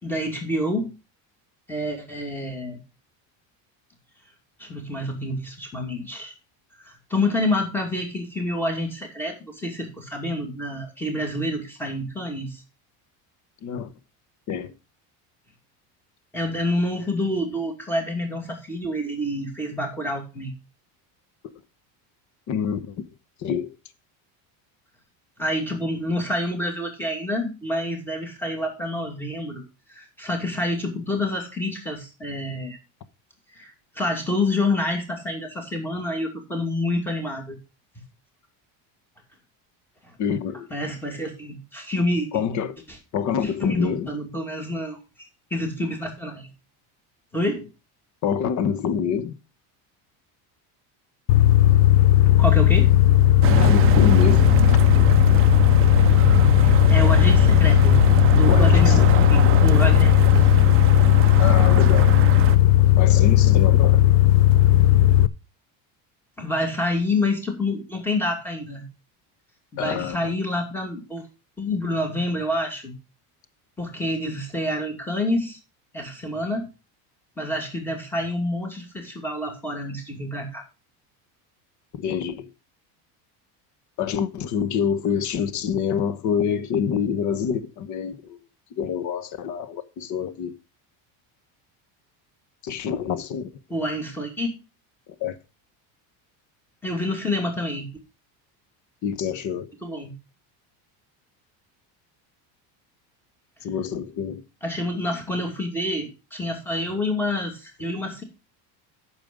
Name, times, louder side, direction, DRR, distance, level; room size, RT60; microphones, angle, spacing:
voice 1, 0.0-0.9 1.7-2.8 4.6-6.3 6.8-12.6 16.3-20.5 25.4-29.6 29.9-32.8 33.5-37.6 40.7-42.4 43.6-45.0 45.5-46.5 47.3-47.7 52.0-52.1 52.4-52.9 56.6-58.0 58.3-60.4 66.4-68.8 69.7-71.2 71.6-72.9 73.8-75.6 75.9-76.7 77.4-80.6 93.7-94.5 96.8-97.9 99.8-100.1 104.6-108.2, left 1 dB, 5° left, 2.4 m, -28 dB
voice 2, 13.6-13.9 14.5-14.8 22.5-23.0 23.4-23.7 40.2-40.7 42.3-42.8 43.1-44.1 48.2-49.4 53.4-54.5 58.5-59.1 61.4-62.2 62.9-64.0 69.8-70.3 82.0-82.5 84.0-88.4 88.7-90.6 92.6-93.5 95.1-95.4 99.0-99.7 103.6-104.4, left 7 dB, 40° left, 1.0 m, -26 dB
sound 1, 51.3-65.3, left 13 dB, 70° left, 0.7 m, -16 dB
sound 2, 53.4-62.6, right 12 dB, 30° right, 0.5 m, -25 dB
8.9 x 6.6 x 5.3 m
cardioid pair, 145°, 43 cm